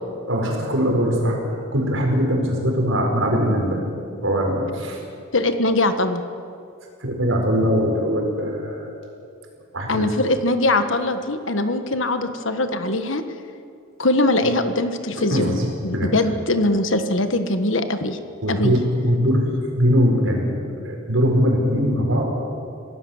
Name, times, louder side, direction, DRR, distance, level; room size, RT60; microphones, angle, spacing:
voice 1, 0.3-1.4 1.7-3.8 4.2-5.0 7.0-8.9 9.7-10.1 14.4-14.5 15.2-16.2 18.4-19.5 19.8-22.2, equal, 70° right, 0 dB, 4.8 m, -21 dB
voice 2, 5.3-6.2 9.9-13.2 14.0-15.6 15.8-18.2 18.5-18.7, left 2 dB, 70° left, 9 dB, 1.5 m, -21 dB
26.5 x 17.5 x 7.3 m, 2.4 s
head